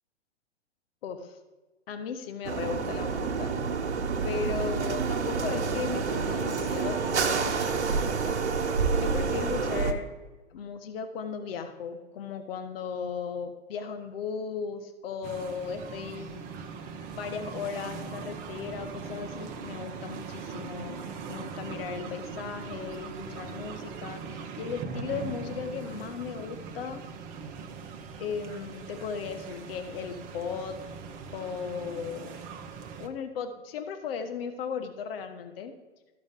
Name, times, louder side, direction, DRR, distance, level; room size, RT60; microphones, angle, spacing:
voice 1, 1.0-1.4 1.9-3.5 4.2-8.4 9.0-10.1 10.5-16.4 17.2-21.0 21.3-27.0 28.2-30.8 31.3-32.3 33.0-35.7, left 6 dB, 55° left, 7 dB, 1.0 m, -36 dB
sound 1, 2.4-9.9, right 5 dB, 70° right, 1.1 m, -28 dB
sound 2, 15.2-33.1, right 5 dB, 25° right, 0.7 m, -40 dB
13.5 x 5.2 x 3.6 m, 1.2 s
hypercardioid pair, 120°, 35 cm